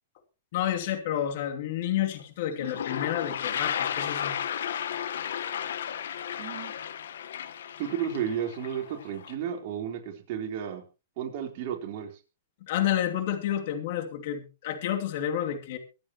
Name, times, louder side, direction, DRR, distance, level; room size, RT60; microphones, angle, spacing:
voice 1, 0.5-4.4 12.6-15.8, left 11 dB, 55° left, 2.7 m, -30 dB
Toilet flush, 2.2-2.3 2.5-9.3, left 9 dB, 75° left, 1.3 m, -34 dB
voice 2, 6.4-6.7 7.8-10.8 11.2-12.1, right 8 dB, 50° right, 3.9 m, -33 dB
24.5 x 8.7 x 3.0 m
hypercardioid pair, 140°, 0 cm